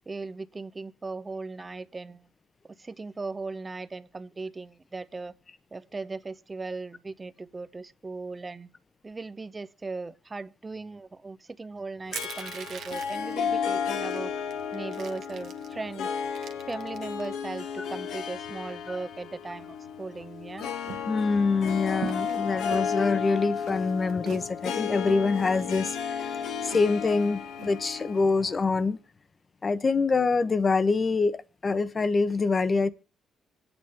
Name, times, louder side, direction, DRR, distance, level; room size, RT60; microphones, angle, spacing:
voice 1, 0.1-2.3 2.8-5.3 5.7-8.7 9.0-14.3 14.7-16.1 16.7-20.7, right 3 dB, 25° right, 0.8 m, -38 dB
Harp, 12.1-28.9, left 7 dB, 80° left, 1.3 m, -33 dB
Crushing, 12.1-13.3 14.1-14.2 14.5-15.7 16.2-17.3, right 8 dB, 70° right, 1.2 m, -41 dB
sound 1, 20.8-28.3, right 10 dB, 90° right, 1.0 m, -44 dB
voice 2, 21.1-26.3 26.6-29.0 29.6-32.9, left 4 dB, 35° left, 1.0 m, -25 dB
26.0 x 9.0 x 3.5 m
cardioid pair, 90°, 0 cm